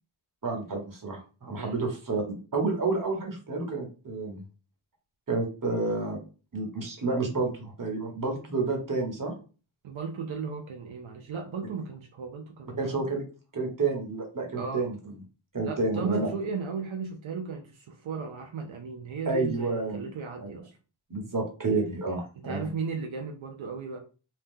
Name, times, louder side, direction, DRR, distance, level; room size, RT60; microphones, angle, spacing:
voice 1, 0.4-2.2 2.5-4.4 5.3-6.2 6.5-9.3 12.8-13.2 13.5-15.2 15.5-16.3 19.2-20.0 20.4-20.5 21.1-22.7, right 3 dB, 45° right, 2 dB, 1.1 m, -30 dB
voice 2, 9.8-13.1 14.5-14.9 15.6-20.8 22.4-24.0, right 5 dB, 85° right, 3 dB, 0.6 m, -35 dB
2.8 x 2.3 x 3.6 m, 0.35 s
wide cardioid pair, 55°, 46 cm